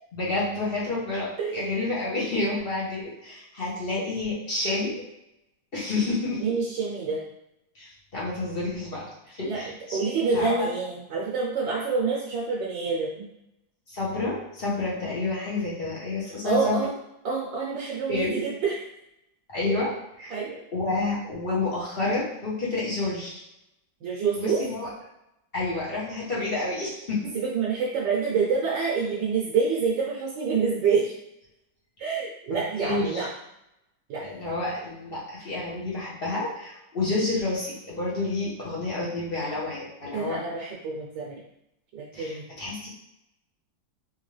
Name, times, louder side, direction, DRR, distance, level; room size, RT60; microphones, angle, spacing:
voice 1, 0.1-5.0 5.7-6.4 7.7-10.7 13.9-16.8 18.1-18.4 19.5-19.9 20.2-20.3 20.7-23.4 24.4-24.9 25.5-27.2 32.8-33.3 34.2-40.4 42.1-42.9, left 3 dB, 35° left, -7 dB, 1.0 m, -29 dB
voice 2, 1.4-1.9 6.4-7.2 9.4-9.6 9.9-13.3 16.4-16.9 17.2-18.7 19.6-19.8 20.3-20.6 24.0-24.6 27.3-31.1 32.0-33.3 34.1-34.2 40.1-41.4 41.9-42.5, right 5 dB, 70° right, -5 dB, 1.4 m, -27 dB
3.7 x 3.0 x 3.2 m, 0.84 s
omnidirectional pair, 2.1 m